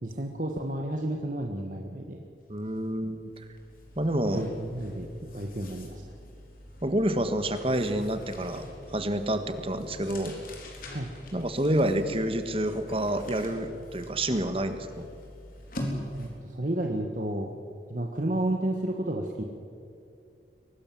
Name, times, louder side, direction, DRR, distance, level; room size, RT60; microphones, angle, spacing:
voice 1, 0.0-2.2 4.3-5.1 5.3-6.0 10.9-11.1 16.2-17.5 17.9-19.4, right 1 dB, 45° right, 1 dB, 1.6 m, -31 dB
voice 2, 2.5-3.3 4.0-4.4 6.8-8.6 8.9-10.3 11.3-15.1, right 1 dB, 30° right, 9 dB, 1.6 m, -28 dB
sound 1, 2.6-2.8 3.1-16.5, left 1 dB, 50° left, 4.1 m, -43 dB
23.5 x 18.5 x 7.7 m, 2.5 s
head